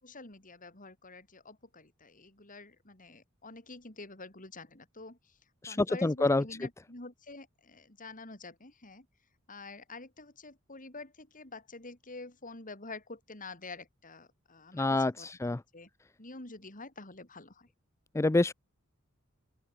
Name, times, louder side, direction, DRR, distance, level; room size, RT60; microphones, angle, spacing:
voice 1, 0.0-5.4 5.7-9.1 9.5-15.9 16.2-17.7, left 3 dB, 40° left, 5.1 m, -48 dB
voice 2, 5.6-6.4 14.7-15.6 18.1-18.5, left 2 dB, 15° left, 0.4 m, -27 dB
open air
head